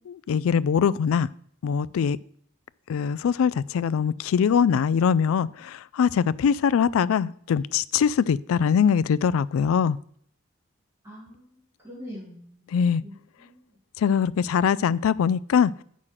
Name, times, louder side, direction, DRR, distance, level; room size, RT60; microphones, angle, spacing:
voice 1, 0.1-1.3 1.6-2.2 2.9-10.0 12.7-13.0 14.0-15.7, left 7 dB, 85° left, 19 dB, 0.3 m, -22 dB
voice 2, 11.0-11.5 11.8-13.8, equal, 15° right, -7 dB, 4.3 m, -44 dB
7.9 x 6.2 x 5.7 m, 0.63 s
head